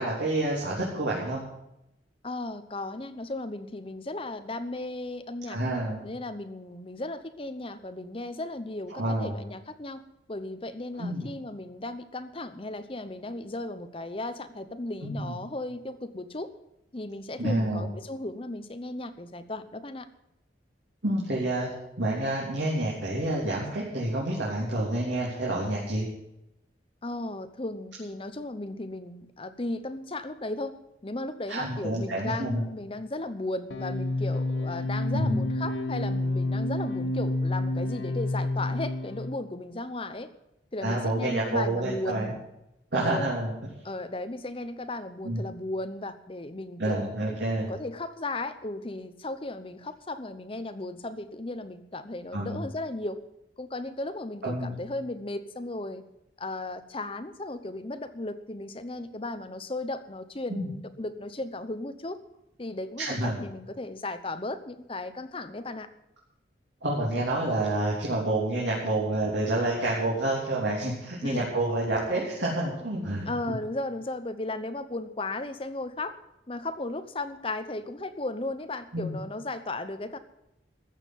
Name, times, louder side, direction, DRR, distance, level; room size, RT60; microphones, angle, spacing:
voice 1, 0.0-1.4 5.5-6.0 8.9-9.3 11.0-11.3 15.0-15.3 17.4-17.9 21.0-21.7 22.0-26.0 31.5-32.6 35.1-35.4 40.8-42.3 42.9-43.5 45.2-45.4 46.8-47.7 52.3-52.6 54.4-54.8 60.5-60.7 63.0-63.4 66.8-73.5 78.9-79.2, right 1 dB, 80° right, -5 dB, 3.5 m, -28 dB
voice 2, 2.2-5.6 6.0-10.0 10.3-16.5 16.9-20.1 27.0-30.7 31.0-40.3 40.7-42.4 42.9-43.3 43.8-53.2 53.6-56.0 56.4-62.2 62.6-65.9 71.2-71.5 73.3-76.2 76.5-80.2, left 2 dB, 30° left, 10 dB, 0.8 m, -35 dB
sound 1, 33.7-39.4, left 2 dB, 80° left, 1.3 m, -29 dB
14.0 x 7.4 x 9.3 m, 0.85 s
head